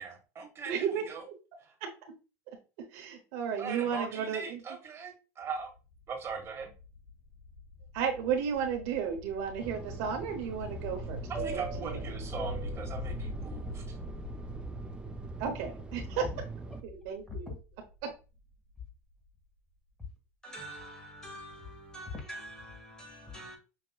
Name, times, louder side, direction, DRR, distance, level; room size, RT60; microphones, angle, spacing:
voice 1, 0.0-1.2 1.6-1.7 3.6-5.7 6.1-6.7 11.3-13.9, right 5 dB, 35° right, 1.6 m, -40 dB
voice 2, 0.7-1.3 1.8-1.9 2.9-4.6 7.9-12.0 15.4-16.3 16.8-17.5 18.0-18.1, right 7 dB, 70° right, 0.9 m, -33 dB
sound 1, 5.4-19.2, left 2 dB, 60° left, 1.7 m, -44 dB
Fixed-wing aircraft airplane, 9.6-16.8, right 4 dB, 10° right, 0.5 m, -42 dB
voice 3, 20.4-23.6, left 1 dB, 10° left, 1.7 m, -44 dB
5.8 x 2.9 x 2.3 m
supercardioid pair, 100°, 8 cm